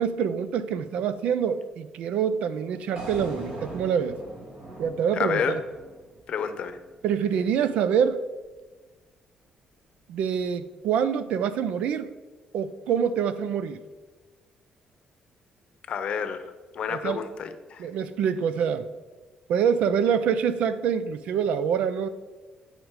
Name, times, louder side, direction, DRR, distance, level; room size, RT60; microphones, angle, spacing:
voice 1, 0.0-4.2 4.8-5.6 7.0-8.2 10.1-12.1 12.5-13.8 16.9-17.2 17.8-18.9 19.5-22.1, right 7 dB, 80° right, 13 dB, 0.5 m, -25 dB
sound 1, 3.0-7.1, right 1 dB, 65° right, 2.2 m, -41 dB
voice 2, 5.1-5.6 6.3-6.8 15.9-17.9, left 7 dB, 55° left, 9 dB, 0.7 m, -30 dB
9.0 x 5.1 x 4.7 m, 1.3 s
cardioid pair, 120°, 2 cm